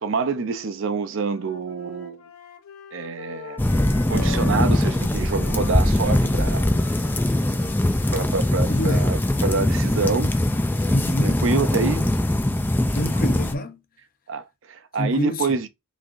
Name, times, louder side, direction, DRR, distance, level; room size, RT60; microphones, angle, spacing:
voice 1, 0.0-2.2 2.9-3.6 4.1-6.6 8.1-10.3 11.2-12.1 14.3-15.7, right 4 dB, 60° right, 0.5 m, -26 dB
sound 1, 1.1-5.0 5.3-9.7, left 3 dB, 80° left, 0.8 m, -43 dB
sound 2, 3.6-13.5, left 1 dB, 10° left, 0.3 m, -21 dB
voice 2, 8.7-9.2 10.9-11.4 12.9-13.8 15.0-15.6, left 1 dB, 40° left, 0.7 m, -27 dB
5.8 x 3.2 x 2.5 m
head